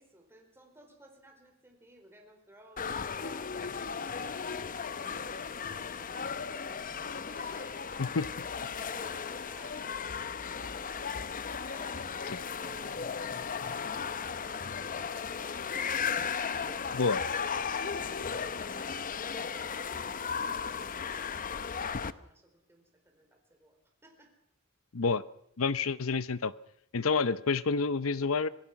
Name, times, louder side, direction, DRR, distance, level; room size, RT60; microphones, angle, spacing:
voice 1, 0.0-3.8 4.1-8.2 8.7-9.8 10.4-13.0 13.4-15.9 16.2-24.3, right 1 dB, 10° right, 2 dB, 4.2 m, -57 dB
sound 1, 2.8-22.1, left 6 dB, 40° left, 0.7 m, -36 dB
voice 2, 25.6-26.5 26.9-28.5, left 4 dB, 75° left, 16 dB, 0.8 m, -28 dB
26.0 x 18.0 x 5.9 m, 0.69 s
head